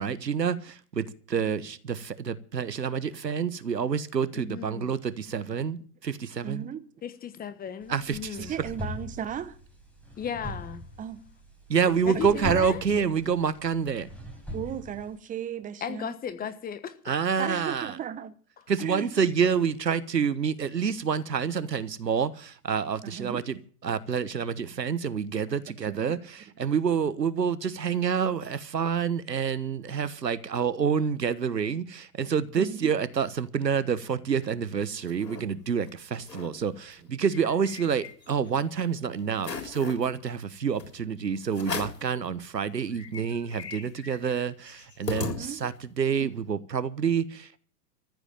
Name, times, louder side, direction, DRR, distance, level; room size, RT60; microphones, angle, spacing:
voice 1, 0.0-6.7 7.9-8.4 11.7-14.1 17.1-17.9 18.7-23.6 23.8-47.6, right 6 dB, 90° right, 1.3 m, -28 dB
voice 2, 4.3-4.9 7.0-8.5 10.2-10.8 12.1-12.8 15.8-17.0 19.4-19.5, left 8 dB, 20° left, 1.3 m, -36 dB
voice 3, 6.4-6.8 8.4-9.6 11.0-11.2 12.1-12.5 14.5-16.1 17.4-18.4 18.8-19.1 23.0-23.4 25.9-26.2 32.5-32.9 41.3-41.4 45.2-45.6 46.2-46.3, right 9 dB, 15° right, 1.0 m, -36 dB
sound 1, 7.8-15.2, left 1 dB, 5° left, 5.6 m, -41 dB
sound 2, 34.6-35.4 35.9-36.0 36.2-36.5 36.9-38.5 38.9-39.0 39.4-40.1 40.8-40.9 41.5-42.1 42.6-42.7 42.9-45.9, left 4 dB, 85° left, 3.7 m, -38 dB
14.5 x 8.3 x 8.9 m
hypercardioid pair, 110°, 48 cm